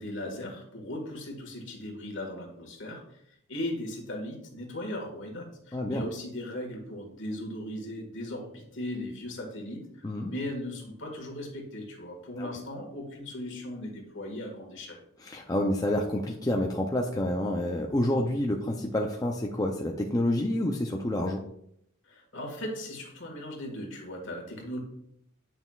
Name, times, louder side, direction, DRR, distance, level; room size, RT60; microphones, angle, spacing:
voice 1, 0.0-3.2 3.5-15.0 22.1-24.8, left 1 dB, 60° left, 1 dB, 1.7 m, -38 dB
voice 2, 5.7-6.0 10.0-10.3 12.4-12.5 15.2-21.4, left 1 dB, 15° left, 1 dB, 0.4 m, -28 dB
9.0 x 5.9 x 2.4 m, 0.74 s
head